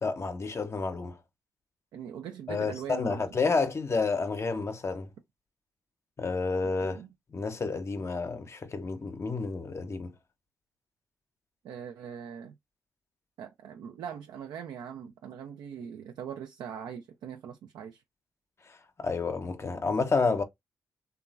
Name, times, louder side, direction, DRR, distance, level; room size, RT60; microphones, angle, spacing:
voice 1, 0.0-1.2 2.5-5.1 6.2-7.0 7.3-10.1 19.0-20.4, left 4 dB, 40° left, 0.5 m, -30 dB
voice 2, 1.9-3.2 6.9-7.1 11.6-12.5 13.4-18.0, right 8 dB, 80° right, 0.3 m, -41 dB
2.9 x 2.3 x 2.3 m
supercardioid pair, 50°, 7 cm